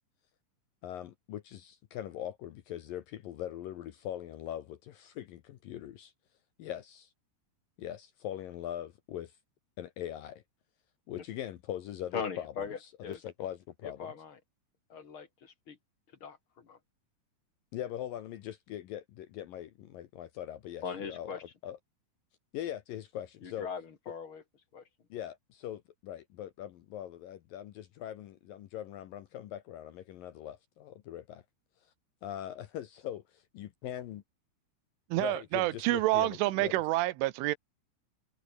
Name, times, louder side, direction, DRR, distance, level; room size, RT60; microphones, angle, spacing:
voice 1, 0.8-6.1 6.6-7.1 7.8-9.4 9.8-10.4 11.1-12.7 13.1-14.1 17.7-21.4 21.6-21.8 22.5-23.7 25.1-31.4 32.2-34.2 35.2-36.7, left 11 dB, 80° left, 2.0 m, -41 dB
voice 2, 12.1-13.2 13.8-14.4 14.9-15.8 16.2-16.8 20.8-21.4 23.4-24.4 24.7-24.8, left 6 dB, 40° left, 1.9 m, -40 dB
voice 3, 35.1-37.6, right 18 dB, 80° right, 3.3 m, -28 dB
omnidirectional pair, 5.7 m